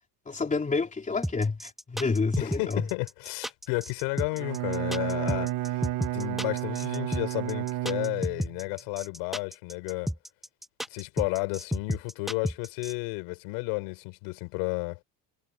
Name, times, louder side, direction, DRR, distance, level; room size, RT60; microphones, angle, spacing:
voice 1, 0.2-2.9, left 4 dB, 20° left, 3.4 m, -28 dB
sound 1, 1.2-12.9, equal, ahead, 0.7 m, -32 dB
voice 2, 2.4-5.8 6.1-10.1 10.9-15.0, left 29 dB, 85° left, 5.0 m, -32 dB
Bowed string instrument, 4.3-8.6, right 16 dB, 60° right, 1.1 m, -32 dB
cardioid pair, 110°, 38 cm